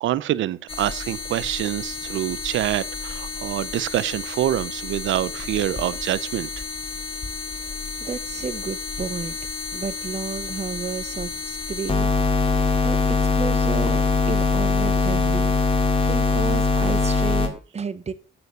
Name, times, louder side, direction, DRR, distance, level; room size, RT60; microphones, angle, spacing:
voice 1, 0.0-6.5, right 13 dB, 75° right, 0.6 m, -26 dB
sound 1, 0.7-17.5, left 3 dB, 30° left, 2.3 m, -25 dB
voice 2, 8.0-9.4 9.7-12.1 12.5-14.0 14.3-15.6 16.0-18.1, right 5 dB, 35° right, 1.0 m, -32 dB
8.4 x 6.9 x 6.6 m
cardioid pair, 90°, 20 cm